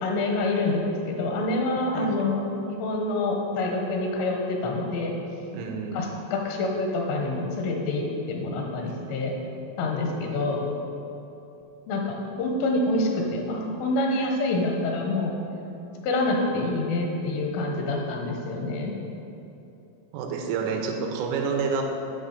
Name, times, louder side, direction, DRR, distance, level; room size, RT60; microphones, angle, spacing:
voice 1, 0.0-5.1 5.9-9.4 9.8-10.7 11.9-15.3 16.0-18.9, left 2 dB, 85° left, 1 dB, 3.7 m, -27 dB
voice 2, 5.5-6.0 20.1-21.8, right 5 dB, 85° right, 2 dB, 3.4 m, -28 dB
9.6 x 5.7 x 6.6 m, 2.9 s
omnidirectional pair, 5.6 m